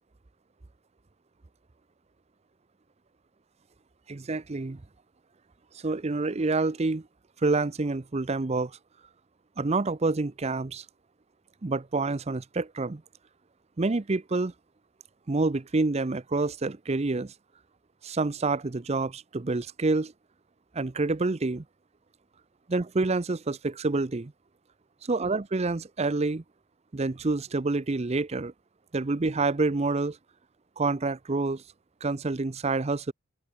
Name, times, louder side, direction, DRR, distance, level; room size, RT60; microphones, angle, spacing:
voice 1, 4.1-4.8 5.8-7.1 7.4-8.7 9.6-10.8 11.6-13.0 13.8-14.5 15.3-17.3 18.0-20.1 20.7-21.6 22.7-24.3 25.1-26.4 26.9-28.5 28.9-30.2 30.8-31.6 32.0-33.1, right 3 dB, 30° right, 0.6 m, -27 dB
open air
head